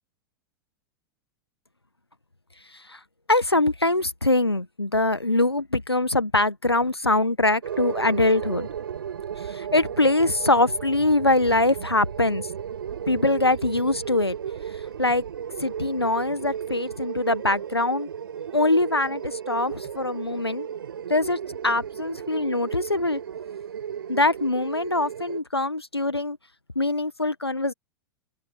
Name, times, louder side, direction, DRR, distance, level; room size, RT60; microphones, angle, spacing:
voice 1, 3.3-8.7 9.4-12.5 13.1-14.4 14.7-15.2 15.6-18.1 18.5-20.7 21.1-23.2 24.1-26.4 26.7-27.7, left 2 dB, 90° left, 1.3 m, -23 dB
sound 1, 7.6-25.4, right 8 dB, 65° right, 4.7 m, -35 dB
open air
figure-of-eight pair, 95°, 13 cm